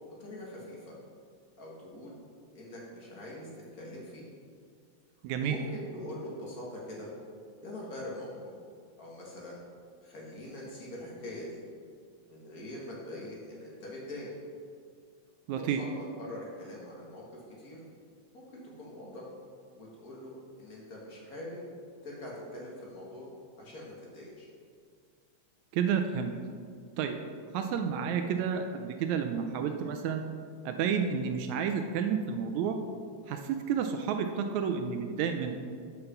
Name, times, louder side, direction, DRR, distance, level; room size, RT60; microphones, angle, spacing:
voice 1, 0.2-0.9 1.6-2.1 2.5-4.3 5.4-7.1 7.6-8.5 9.0-9.6 10.0-11.6 12.2-14.3 15.5-15.9 16.2-17.8 18.3-19.3 19.8-21.6 22.0-23.3 23.6-24.5, left 1 dB, 40° left, -4 dB, 1.6 m, -43 dB
voice 2, 5.2-5.6 15.5-15.8 25.7-26.3 27.0-27.2 27.5-30.2 30.6-32.8 33.3-35.6, right 7 dB, 80° right, 6 dB, 1.8 m, -30 dB
7.7 x 5.8 x 5.8 m, 2.2 s
omnidirectional pair, 3.4 m